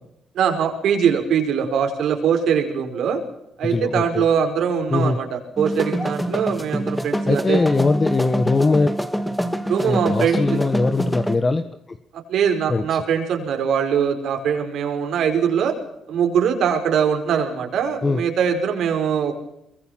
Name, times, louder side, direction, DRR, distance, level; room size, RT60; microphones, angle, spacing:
voice 1, 0.3-3.2 3.6-7.6 9.6-10.6 12.1-15.8 16.1-19.4, right 7 dB, 75° right, 4 dB, 5.4 m, -22 dB
voice 2, 3.6-4.2 4.9-5.2 7.3-8.9 9.8-11.6 11.9-12.0 12.7-12.8 18.0-18.2, left 3 dB, 30° left, 8 dB, 1.6 m, -21 dB
sound 1, 5.6-11.4, equal, 5° left, 2.3 m, -25 dB
23.5 x 22.5 x 5.9 m, 0.81 s
cardioid pair, 90°, 0 cm